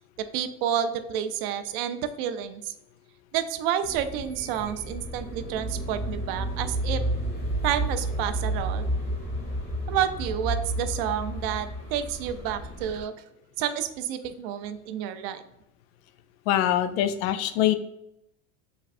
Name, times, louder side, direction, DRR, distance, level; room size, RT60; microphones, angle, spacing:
voice 1, 0.3-2.7 3.3-7.0 7.6-8.9 9.9-13.1 13.6-15.4, right 9 dB, 55° right, 10 dB, 0.4 m, -29 dB
sound 1, 3.8-13.0, right 1 dB, 25° left, 1.5 m, -31 dB
voice 2, 16.5-17.7, left 12 dB, 55° left, 11 dB, 0.4 m, -23 dB
5.0 x 3.2 x 2.5 m, 0.81 s
cardioid pair, 170°, 36 cm